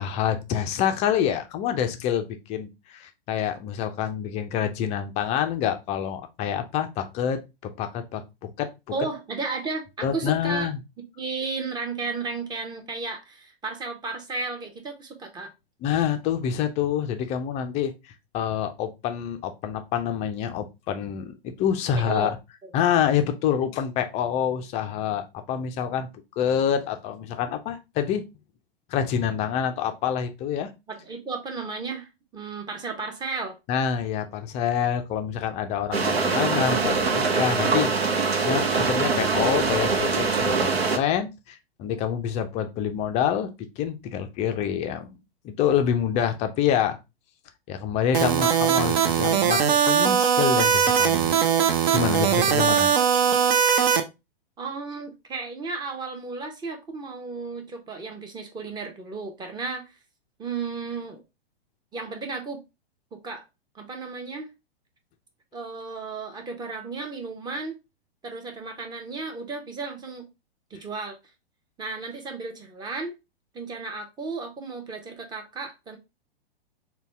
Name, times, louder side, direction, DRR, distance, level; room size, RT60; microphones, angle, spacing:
voice 1, 0.0-8.7 10.0-10.8 15.8-22.4 22.7-26.1 26.4-28.2 28.9-30.7 33.7-45.2 45.4-47.0 47.7-51.5 51.9-52.9, left 8 dB, 25° left, 0.4 m, -27 dB
voice 2, 8.9-10.7 11.2-15.5 22.0-22.3 22.6-22.7 30.9-33.6 52.3-52.8 54.6-59.9 60.4-61.2 61.9-62.6 63.1-63.4 63.7-64.5 65.5-67.8 68.2-70.3 70.7-71.2 71.8-73.1 73.5-76.0, right 4 dB, 15° right, 0.8 m, -34 dB
sound 1, 35.9-41.0, right 4 dB, 90° right, 0.7 m, -23 dB
sound 2, 48.1-54.0, right 8 dB, 45° right, 0.7 m, -20 dB
3.9 x 2.3 x 3.3 m
hypercardioid pair, 110°, 30 cm